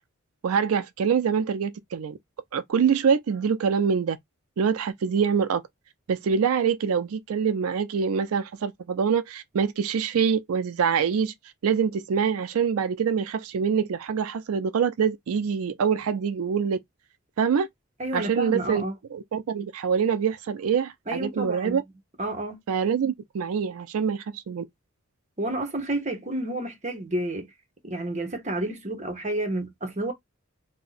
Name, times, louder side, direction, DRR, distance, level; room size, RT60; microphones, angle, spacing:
voice 1, 0.4-2.2 2.5-4.2 4.6-5.6 6.1-11.3 11.6-16.8 17.4-17.7 18.1-18.8 19.1-21.8 22.7-24.6, right 6 dB, 90° right, 0.4 m, -25 dB
voice 2, 18.0-18.9 21.1-21.8 22.2-22.6 25.4-27.5 27.8-30.1, right 1 dB, 35° right, 0.9 m, -30 dB
2.6 x 2.1 x 3.9 m
head